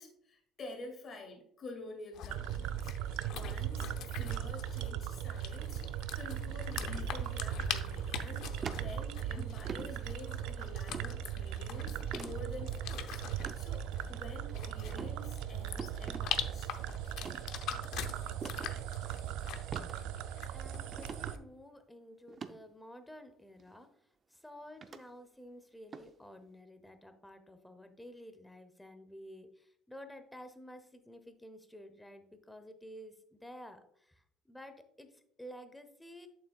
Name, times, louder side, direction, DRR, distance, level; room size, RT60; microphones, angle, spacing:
voice 1, 0.0-2.9 3.2-5.8 6.1-13.2 13.5-16.9, left 2 dB, 35° left, 3 dB, 2.1 m, -48 dB
sound 1, 2.1-21.4, left 9 dB, 65° left, 0.6 m, -44 dB
sound 2, 2.3-21.4, right 10 dB, 90° right, 0.4 m, -39 dB
sound 3, 8.6-9.3 9.6-9.9 10.9-11.1 12.1-12.4 13.4-13.6 14.1-14.5 14.9-15.1 15.8-16.2 17.1-17.4 18.4-18.7 19.7-19.9 20.3-20.4 20.9-21.3 22.3-22.5 23.6-23.7 24.8-25.0 25.9-26.1, right 5 dB, 30° right, 0.5 m, -43 dB
voice 2, 20.5-23.9 24.3-36.3, equal, 5° left, 9 dB, 0.8 m, -52 dB
8.4 x 7.3 x 2.3 m, 0.69 s
cardioid pair, 150°, 0 cm